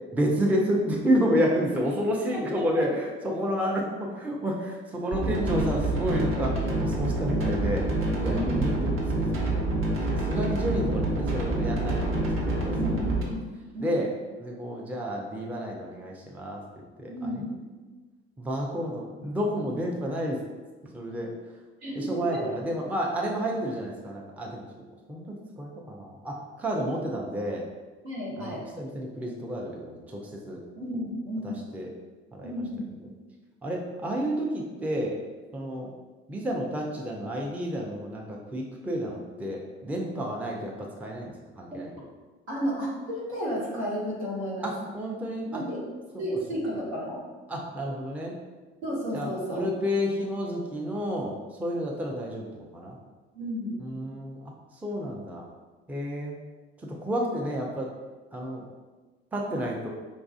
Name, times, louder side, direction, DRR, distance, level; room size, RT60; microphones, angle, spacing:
voice 1, 0.1-7.9 8.2-9.7 10.1-12.7 13.8-14.1 14.4-16.6 17.0-17.4 18.4-20.4 20.9-21.3 22.0-24.7 25.1-27.6 28.4-30.2 30.5-30.6 31.4-31.9 32.3-32.5 33.6-35.2 35.5-35.9 36.3-41.9 44.6-45.6 46.1-46.2 47.5-48.4 49.1-51.3 51.6-53.0 53.8-54.4 54.8-55.4 55.9-56.4 56.8-57.9 58.3-58.6 59.3-59.9, equal, 5° right, -1 dB, 0.4 m, -30 dB
voice 2, 2.3-2.7 3.6-3.7 8.1-8.7 12.6-14.1 17.1-17.5 21.8-22.4 28.0-28.6 30.7-31.6 32.4-32.9 41.7-41.8 42.5-44.7 45.5-45.8 46.2-47.2 48.8-49.7 53.3-53.8, equal, 75° right, -6 dB, 1.1 m, -33 dB
sound 1, 5.1-13.2, right 2 dB, 40° right, 1.0 m, -27 dB
4.7 x 2.3 x 2.4 m, 1.3 s
figure-of-eight pair, 55°, 33 cm